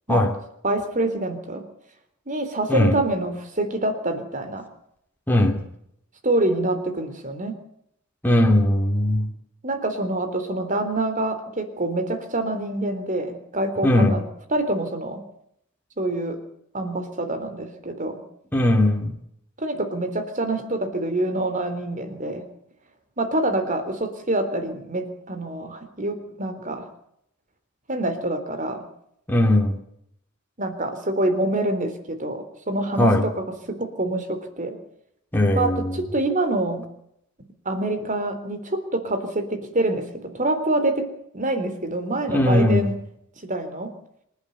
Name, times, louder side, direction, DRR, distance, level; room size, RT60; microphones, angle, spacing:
voice 1, 0.6-1.6 2.3-4.7 6.2-7.6 9.6-14.2 14.5-15.2 16.0-16.4 16.7-18.2 19.6-22.5 23.2-26.9 27.9-28.9 30.6-33.3 33.7-34.8 35.5-36.8 37.7-41.1 41.3-43.0 43.4-43.9, right 1 dB, 40° right, 8 dB, 3.8 m, -26 dB
voice 2, 5.3-5.6 8.2-9.3 13.8-14.2 18.5-19.1 29.3-29.8 33.0-33.2 35.3-36.0 42.3-42.8, left 1 dB, 10° left, 1 dB, 2.9 m, -19 dB
26.5 x 11.5 x 9.5 m, 0.74 s
head